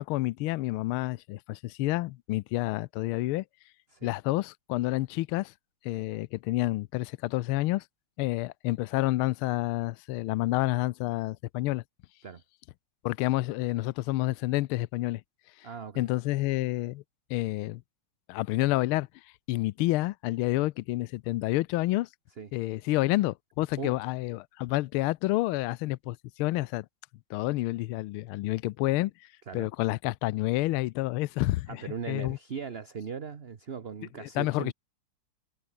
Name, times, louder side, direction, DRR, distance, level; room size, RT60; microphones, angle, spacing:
voice 1, 0.0-3.4 4.0-5.5 5.8-7.8 8.2-11.8 13.0-15.2 15.6-15.7 16.0-17.0 17.3-17.8 18.3-19.1 19.5-22.1 22.5-26.9 27.3-32.4 34.2-34.7, left 18 dB, 80° left, 1.4 m, -29 dB
voice 2, 15.6-16.1 22.4-22.5 23.8-24.0 29.5-29.7 31.7-34.7, right 6 dB, 40° right, 1.0 m, -39 dB
omnidirectional pair, 2.4 m